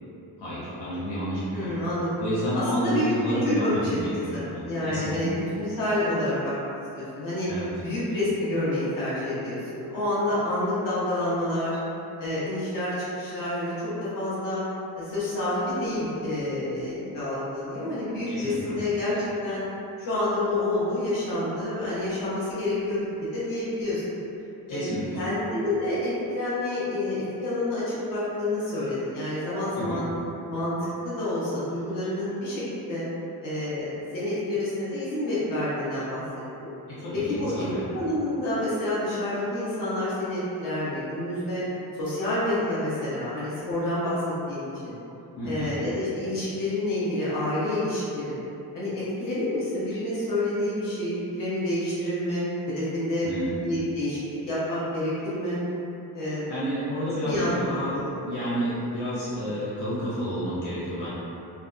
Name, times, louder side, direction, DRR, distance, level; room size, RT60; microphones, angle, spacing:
voice 1, 0.4-1.7 2.2-5.3 7.5-7.7 18.3-18.8 24.7-25.2 29.8-30.0 36.9-37.9 45.4-45.8 53.2-53.5 56.2-57.9 58.2-61.1, equal, 85° left, -10 dB, 0.8 m, -30 dB
voice 2, 1.5-2.1 2.5-3.9 4.3-6.5 7.0-7.5 7.8-11.8 12.2-14.6 14.9-19.6 20.0-24.1 24.7-24.9 25.1-30.1 30.5-30.7 31.0-33.0 33.4-36.2 36.6-36.7 37.1-41.6 42.0-44.2 44.5-45.0 45.4-48.4 48.7-53.3 53.6-55.6 56.1-56.5 57.2-57.5 57.9-58.1, left 1 dB, 55° left, -10 dB, 0.9 m, -28 dB
2.7 x 2.2 x 2.4 m, 2.8 s
cardioid pair, 180°, 39 cm